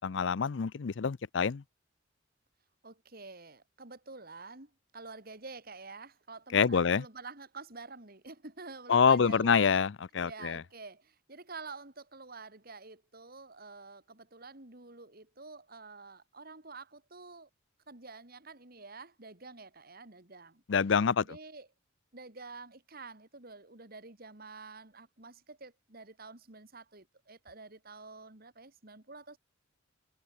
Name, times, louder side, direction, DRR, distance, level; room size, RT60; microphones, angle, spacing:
voice 1, 0.0-1.6 6.5-7.0 8.9-10.6 20.7-21.4, left 6 dB, 65° left, 0.5 m, -26 dB
voice 2, 2.8-9.7 10.2-17.5 17.9-20.6 21.2-21.7 22.1-29.4, right 3 dB, 50° right, 3.1 m, -48 dB
head